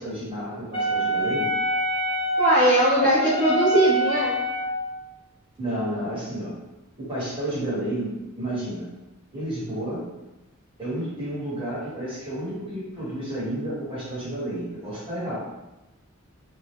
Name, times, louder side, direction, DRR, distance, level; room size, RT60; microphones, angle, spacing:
voice 1, 0.0-1.5 5.6-6.5 7.0-8.9 9.3-10.0 10.8-15.4, right 1 dB, 25° right, -9 dB, 1.1 m, -31 dB
Wind instrument woodwind instrument, 0.7-4.9, right 1 dB, 30° left, 0.6 m, -25 dB
voice 2, 2.4-4.4, equal, 45° right, -13 dB, 0.8 m, -20 dB
2.1 x 2.1 x 2.9 m, 1.0 s
head